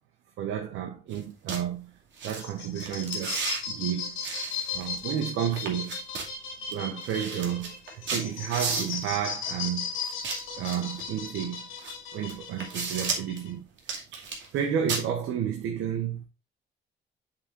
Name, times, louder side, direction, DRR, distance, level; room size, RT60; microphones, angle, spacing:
voice 1, 0.4-1.9 2.2-3.4 3.7-4.1 4.7-6.0 6.7-9.9 10.6-11.7 12.1-13.7 14.1-16.3, right 9 dB, 85° right, 1.2 m, -31 dB
sound 1, 1.1-1.2 1.5-1.6 2.2-2.4 2.8-3.6 4.2-5.2 5.5-6.3 6.7-6.8 7.0-9.1 10.0-11.1 11.8-11.9 12.3-13.4 13.8-14.6 14.9-15.0, right 5 dB, 70° right, 2.5 m, -33 dB
sound 2, 2.2-13.5, left 5 dB, 90° left, 3.0 m, -37 dB
7.5 x 4.0 x 4.5 m
cardioid pair, 90°, 20 cm